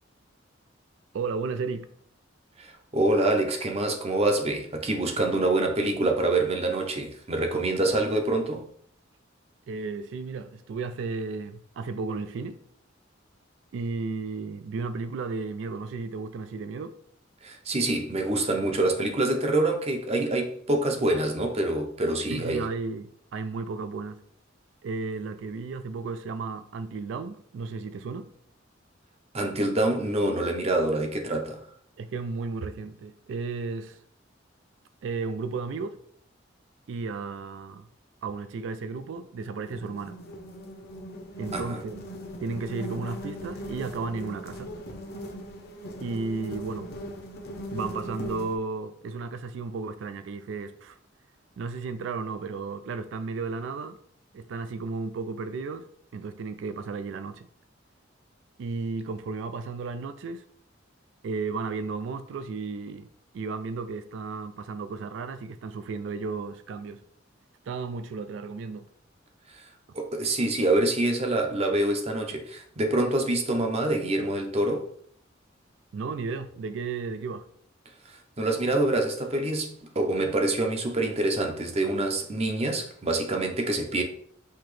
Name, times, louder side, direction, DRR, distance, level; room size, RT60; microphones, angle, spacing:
voice 1, 1.1-1.9 9.7-12.6 13.7-17.0 22.3-24.2 24.8-28.3 32.0-34.0 35.0-36.0 36.9-37.9 38.2-40.2 41.4-42.1 42.4-44.7 46.0-46.9 47.7-51.0 51.6-54.0 54.3-55.9 56.1-57.5 58.6-60.4 61.2-63.1 63.3-67.0 67.7-68.9 75.9-77.4, right 4 dB, 75° right, 0.3 m, -34 dB
voice 2, 2.6-8.6 17.4-22.6 29.3-31.6 41.5-41.8 69.9-74.8 78.1-84.0, right 2 dB, 35° right, 0.7 m, -26 dB
sound 1, 39.4-48.6, equal, 55° left, 0.7 m, -39 dB
5.7 x 2.8 x 3.2 m
head